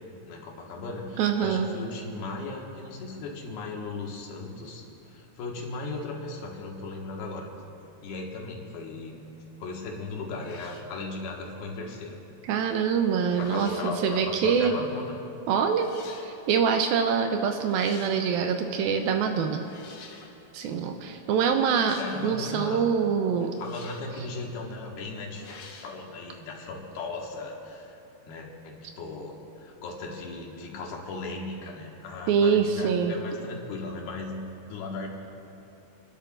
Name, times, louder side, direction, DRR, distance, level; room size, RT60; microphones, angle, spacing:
voice 1, 0.2-7.5 8.0-9.2 9.6-12.2 13.3-15.2 22.0-22.9 23.6-28.0 28.3-35.1, left 3 dB, 90° left, -1 dB, 3.6 m, -37 dB
voice 2, 1.2-1.7 12.4-14.7 15.5-15.9 16.2-19.6 20.5-23.6 32.3-33.2, right 6 dB, 80° right, 5 dB, 2.5 m, -25 dB
sound 1, 9.8-10.0 10.3-10.9 12.6-12.9 13.2-13.9 14.9-15.0 15.7-16.3 17.5-18.3 19.6-20.4 21.6-22.3 23.4-24.2 25.3-26.0, left 4 dB, 70° left, 2.9 m, -48 dB
29.5 x 12.0 x 2.5 m, 2.9 s
omnidirectional pair, 4.3 m